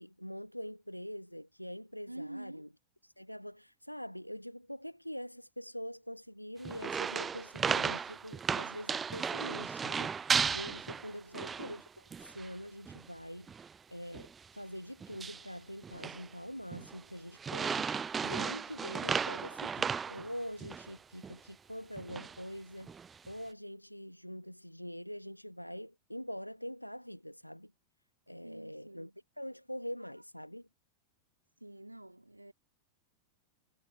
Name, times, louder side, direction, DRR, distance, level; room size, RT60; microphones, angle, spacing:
voice 1, 0.0-2.7 3.0-11.9 12.2-13.5 13.9-22.9 23.3-27.7 28.3-29.1 29.4-30.7, equal, 90° left, 1.2 m, -44 dB
voice 2, 2.1-2.6 11.1-11.4 28.4-29.2 31.6-32.5, right 1 dB, 85° right, 2.9 m, -47 dB
sound 1, 6.6-11.8 12.1-12.5 12.9-13.1 13.5-13.8 14.1-14.4 15.0-15.5 15.8-16.3 16.7-17.0 17.4-20.9 21.2-21.3 22.0-22.4 22.9-23.3, right 6 dB, 20° right, 0.5 m, -35 dB
figure-of-eight pair, 90°, 0 cm